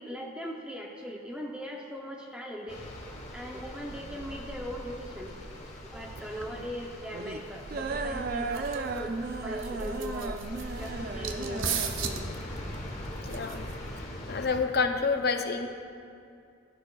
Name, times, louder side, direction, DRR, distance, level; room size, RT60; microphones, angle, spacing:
voice 1, 0.0-2.8 3.3-5.4 5.9-10.4 10.8-12.2 14.9-15.1, equal, 5° right, -1 dB, 0.6 m, -39 dB
sound 1, 2.7-14.6, left 1 dB, 35° left, 1.1 m, -42 dB
sound 2, 3.9-13.9, right 3 dB, 45° right, 0.4 m, -37 dB
sound 3, 7.4-14.1, right 5 dB, 75° right, 0.7 m, -38 dB
voice 2, 13.2-13.6 14.3-15.7, left 4 dB, 50° left, 6 dB, 0.6 m, -28 dB
15.0 x 12.5 x 2.4 m, 2.5 s
head